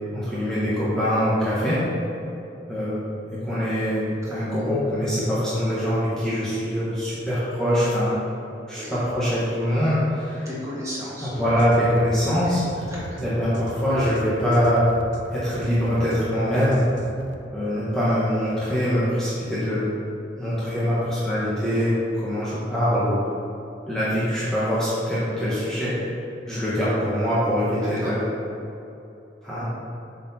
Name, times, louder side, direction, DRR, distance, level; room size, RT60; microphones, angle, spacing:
voice 1, 0.1-1.8 2.7-3.1 3.4-8.1 8.7-10.5 11.2-12.6 13.2-14.8 15.3-16.8 17.5-19.9 20.4-23.2 23.9-25.9 26.5-28.2 29.4-29.6, equal, 5° left, -11 dB, 1.2 m, -23 dB
voice 2, 4.2-4.8 8.7-8.9 10.4-11.5 12.2-12.5 12.9-13.2 27.8-28.2, equal, 15° right, -7 dB, 1.6 m, -36 dB
sound 1, 11.4-17.5, right 1 dB, 75° right, 0.5 m, -38 dB
8.1 x 4.4 x 4.2 m, 2.8 s
head